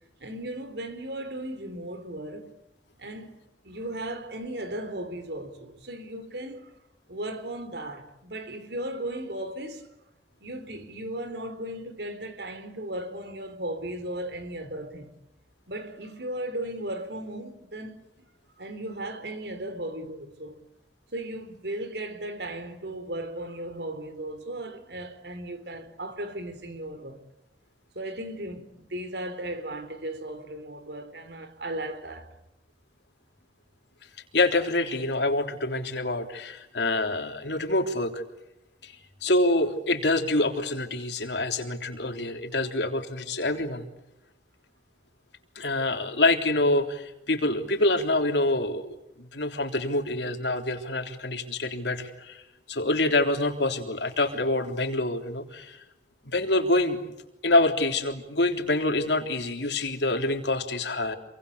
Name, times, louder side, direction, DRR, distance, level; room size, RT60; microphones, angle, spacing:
voice 1, 0.2-2.5 3.0-3.4 3.6-6.7 7.1-9.9 10.4-15.1 15.7-18.0 18.6-20.6 21.1-27.2 28.0-32.3, right 1 dB, 80° right, 3.8 m, -36 dB
voice 2, 34.3-38.2 38.8-38.9 39.2-43.9 45.6-49.0 49.3-52.4 52.7-55.8 56.3-57.0 57.4-61.2, left 2 dB, 85° left, 3.5 m, -26 dB
27.5 x 24.0 x 8.4 m
head